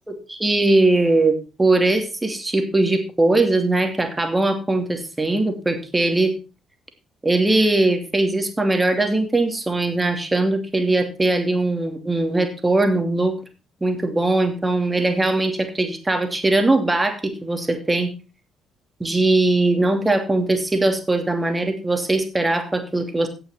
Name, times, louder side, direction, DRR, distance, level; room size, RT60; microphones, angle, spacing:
voice 1, 0.1-6.3 7.2-13.3 13.8-18.1 19.0-23.3, right 2 dB, 15° right, 6 dB, 2.7 m, -20 dB
16.5 x 6.1 x 4.4 m, 0.31 s
figure-of-eight pair, 45°, 0 cm